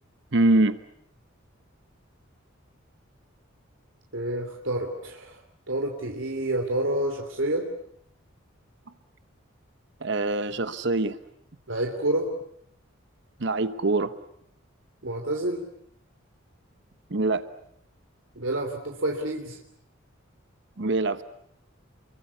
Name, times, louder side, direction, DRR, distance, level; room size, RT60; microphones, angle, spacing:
voice 1, 0.3-0.8 10.0-11.2 13.4-14.1 17.1-17.4 20.8-21.2, right 2 dB, 60° right, 12 dB, 1.0 m, -24 dB
voice 2, 4.1-5.4 5.7-7.7 11.7-12.3 15.0-15.6 18.3-19.6, right 1 dB, 80° right, 2 dB, 3.1 m, -28 dB
28.5 x 23.5 x 8.4 m, 0.69 s
head